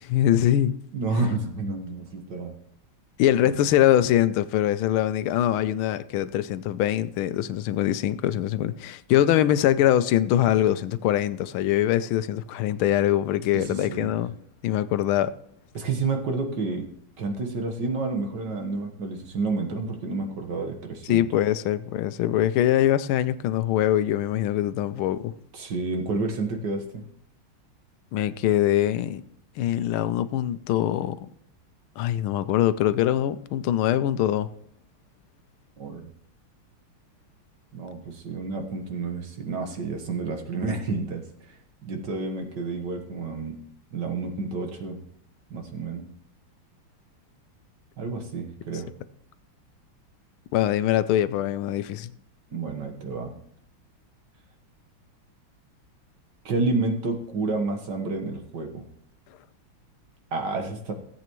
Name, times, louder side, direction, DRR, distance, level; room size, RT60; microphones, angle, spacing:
voice 1, 0.0-0.8 3.2-14.3 14.6-15.3 21.1-25.3 28.1-29.2 29.6-31.3 32.0-34.5 50.5-52.1, left 12 dB, 80° left, 1.4 m, -23 dB
voice 2, 0.9-2.5 13.5-14.1 15.7-16.9 17.2-21.2 25.5-27.0 35.8-36.1 37.7-41.6 41.8-43.6 43.9-45.0 45.5-46.1 48.0-48.9 52.5-53.4 56.5-58.9 60.3-60.9, right 3 dB, 60° right, 1.9 m, -30 dB
17.0 x 8.2 x 3.0 m
omnidirectional pair, 2.3 m